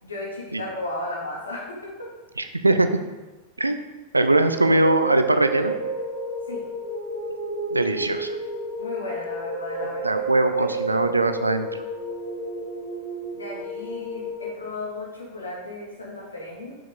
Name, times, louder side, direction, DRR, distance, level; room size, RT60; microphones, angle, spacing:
voice 1, 0.0-1.7 6.5-6.6 8.8-10.1 10.4-11.1 13.3-16.8, left 2 dB, 75° left, -4 dB, 3.0 m, -35 dB
voice 2, 2.4-2.9 3.6-3.8 4.1-5.7 7.7-8.4 10.0-11.7, right 2 dB, 80° right, 9 dB, 0.7 m, -21 dB
sound 1, 4.2-14.5, right 2 dB, 55° right, 2.3 m, -31 dB
9.2 x 6.9 x 4.0 m, 1.2 s
figure-of-eight pair, 90°, 0 cm